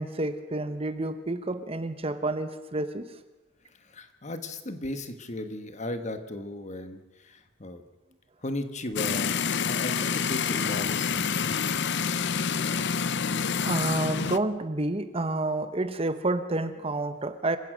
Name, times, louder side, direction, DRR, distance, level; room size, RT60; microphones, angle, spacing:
voice 1, 0.0-3.1 13.6-17.6, right 2 dB, 25° right, 10 dB, 0.9 m, -29 dB
voice 2, 3.8-7.8 8.4-11.8, left 1 dB, 35° left, 8 dB, 1.5 m, -36 dB
sound 1, 9.0-14.4, left 6 dB, 55° left, 0.6 m, -27 dB
27.0 x 16.0 x 6.3 m, 1.1 s
head